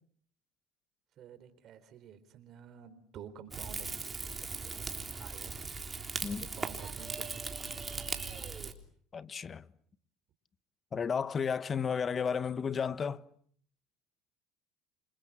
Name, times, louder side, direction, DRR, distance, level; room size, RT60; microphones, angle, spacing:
voice 1, 1.2-4.9 5.2-8.0, right 8 dB, 50° right, 4.0 m, -52 dB
Rain / Fire, 3.5-8.7, right 4 dB, 20° right, 3.5 m, -39 dB
voice 2, 9.1-9.7 10.9-13.2, left 6 dB, 30° left, 1.1 m, -33 dB
28.5 x 26.0 x 7.5 m
supercardioid pair, 95°, 0 cm